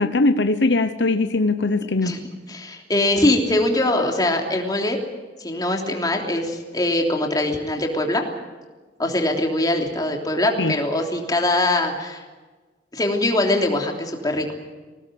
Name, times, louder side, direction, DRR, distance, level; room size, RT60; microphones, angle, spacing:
voice 1, 0.0-2.1 10.6-10.7, left 2 dB, 70° left, 0.9 m, -20 dB
voice 2, 2.5-5.0 5.4-8.2 9.0-12.2 12.9-14.5, left 1 dB, 20° left, 3.2 m, -22 dB
21.5 x 18.0 x 9.4 m
head